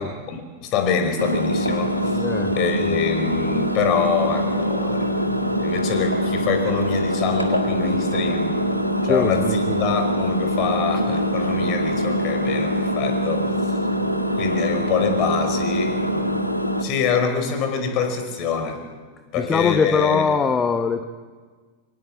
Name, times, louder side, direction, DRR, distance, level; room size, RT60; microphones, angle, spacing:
voice 1, 0.0-2.3 2.5-8.5 9.0-13.5 14.3-16.3 16.8-18.8 19.3-20.2, left 6 dB, 40° left, 7 dB, 5.3 m, -25 dB
Engine, 1.2-16.8, equal, 90° left, 1.7 m, -23 dB
voice 2, 2.1-2.5 9.1-9.9 19.4-21.0, left 5 dB, 20° left, 8 dB, 1.2 m, -22 dB
26.5 x 19.0 x 7.9 m, 1.4 s
figure-of-eight pair, 90°, 0 cm